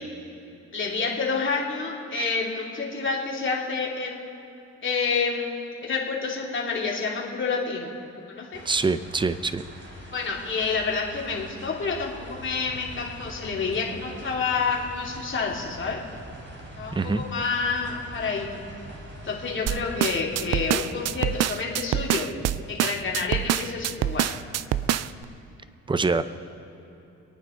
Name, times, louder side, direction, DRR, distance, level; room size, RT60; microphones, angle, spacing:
voice 1, 0.7-4.3 4.8-7.9 8.3-8.6 10.1-16.0 16.8-18.6 19.2-22.3 22.7-24.3, left 4 dB, 40° left, -3 dB, 2.9 m, -28 dB
sound 1, 8.5-21.5, right 1 dB, 40° right, 3.6 m, -45 dB
voice 2, 8.6-9.6 16.9-17.2 25.9-26.2, right 4 dB, 15° right, 13 dB, 0.6 m, -24 dB
sound 2, 12.3-25.2, equal, 80° right, 3.7 m, -45 dB
sound 3, 19.7-25.2, right 12 dB, 60° right, 0.5 m, -25 dB
26.5 x 9.4 x 3.9 m, 2.9 s
cardioid pair, 90°, 30 cm